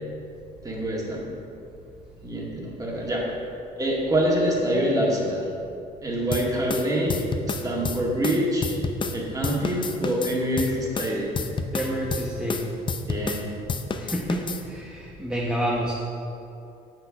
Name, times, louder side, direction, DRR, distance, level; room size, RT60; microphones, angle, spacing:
voice 1, 0.6-1.2 2.2-3.2 3.8-5.5 6.0-7.2 7.6-8.7 9.1-11.4 13.1-13.5, equal, 20° right, -3 dB, 1.9 m, -25 dB
sound 1, 6.3-9.2 9.4-13.4 13.7-14.6, left 4 dB, 30° left, 0.5 m, -29 dB
voice 2, 11.7-12.7 14.0-15.9, equal, 5° right, -4 dB, 1.0 m, -28 dB
7.6 x 6.2 x 5.0 m, 2.7 s
cardioid pair, 110°, 17 cm